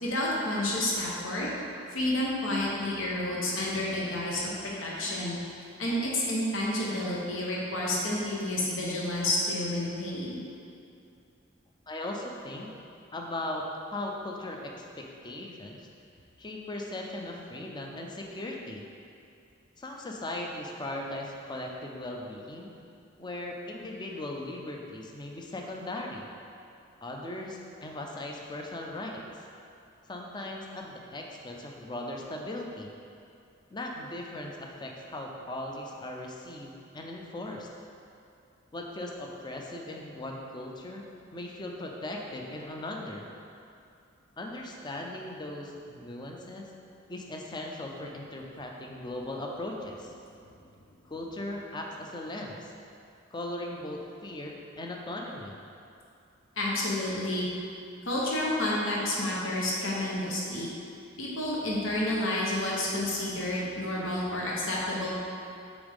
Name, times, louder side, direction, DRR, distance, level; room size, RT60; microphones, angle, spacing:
voice 1, 0.0-1.5 1.9-4.5 4.8-5.4 5.8-10.4 56.6-57.5 58.1-60.7 61.2-65.1, left 1 dB, 80° left, -5 dB, 1.0 m, -30 dB
voice 2, 11.9-12.7 13.1-15.9 16.4-18.8 19.8-22.7 23.2-26.3 27.0-29.2 30.1-32.9 33.7-37.7 38.7-41.0 41.3-43.3 44.4-46.7 47.1-50.1 51.0-52.7 53.3-55.5, left 1 dB, 20° left, 0 dB, 0.5 m, -38 dB
7.0 x 4.0 x 3.5 m, 2.6 s
head